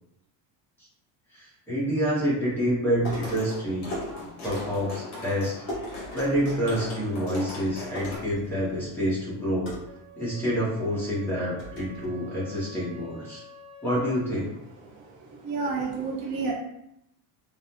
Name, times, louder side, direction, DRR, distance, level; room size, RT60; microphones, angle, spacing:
voice 1, 1.3-3.9 4.4-5.5 6.1-9.7 10.2-13.4 13.8-14.5, equal, 5° left, -9 dB, 0.6 m, -27 dB
sound 1, 3.0-3.5 3.9-4.8 5.7-7.3 7.6-7.7 7.9-8.9 9.7-10.6 11.1-11.2 11.6-12.1, equal, 25° left, 1.0 m, -39 dB
sound 2, 3.2-8.2, left 2 dB, 55° left, 1.1 m, -39 dB
Wind instrument woodwind instrument, 9.8-14.3, right 2 dB, 65° right, 0.7 m, -48 dB
voice 2, 14.9-16.5, right 4 dB, 90° right, -1 dB, 1.0 m, -31 dB
3.3 x 2.0 x 2.7 m, 0.82 s
cardioid pair, 180°, 48 cm